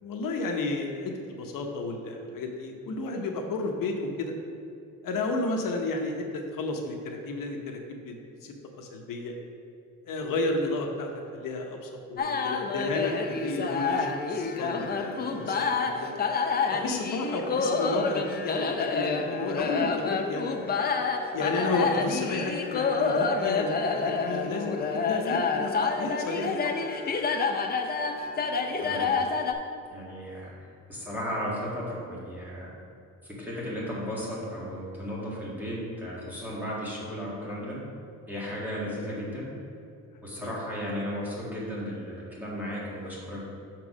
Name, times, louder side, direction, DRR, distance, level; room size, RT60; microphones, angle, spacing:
voice 1, 0.0-4.3 5.0-9.4 10.1-16.1 16.7-20.6 21.3-26.8 40.4-40.5, left 2 dB, 80° left, 2 dB, 0.9 m, -32 dB
sound 1, 12.2-29.5, left 4 dB, 30° left, 0.5 m, -28 dB
voice 2, 29.9-30.5 30.9-32.7 33.4-37.8 38.3-39.5 40.2-43.4, equal, 5° right, -7 dB, 1.8 m, -35 dB
6.1 x 4.6 x 6.0 m, 2.5 s
wide cardioid pair, 160°, 33 cm